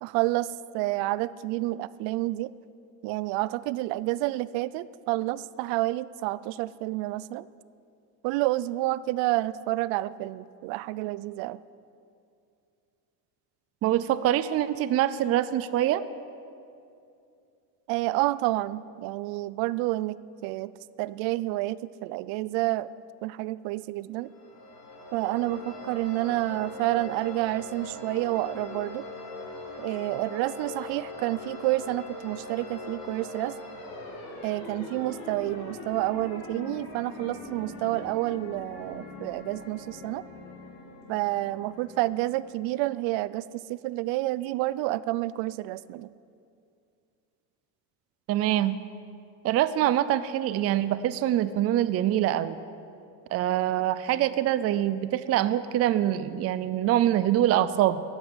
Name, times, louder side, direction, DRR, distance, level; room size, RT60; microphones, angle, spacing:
voice 1, 0.0-2.5 3.0-7.5 8.2-11.6 17.9-20.7 21.0-22.9 23.2-24.3 25.1-29.0 29.8-33.5 34.4-40.2 41.1-46.1, right 17 dB, 85° right, 18 dB, 0.6 m, -29 dB
voice 2, 13.8-16.0 48.3-48.8 49.4-52.5 53.3-58.0, right 12 dB, 35° right, 14 dB, 0.4 m, -24 dB
sound 1, 24.2-42.8, left 2 dB, 55° left, 5.1 m, -41 dB
14.0 x 11.0 x 8.1 m, 2.5 s
cardioid pair, 160°, 43 cm